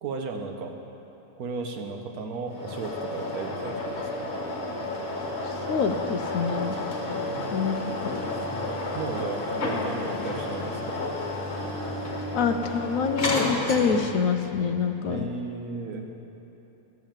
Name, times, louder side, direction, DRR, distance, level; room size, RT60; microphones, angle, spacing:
voice 1, 0.0-0.7 1.4-4.3 7.3-7.8 8.7-11.0 15.1-16.1, right 4 dB, 70° right, 3 dB, 1.4 m, -35 dB
sound 1, 2.5-14.2, left 2 dB, 45° left, 1.5 m, -31 dB
voice 2, 5.4-6.8 7.5-8.0 12.3-15.3, left 6 dB, 70° left, 7 dB, 0.9 m, -26 dB
12.5 x 7.1 x 7.4 m, 3.0 s
omnidirectional pair, 1.7 m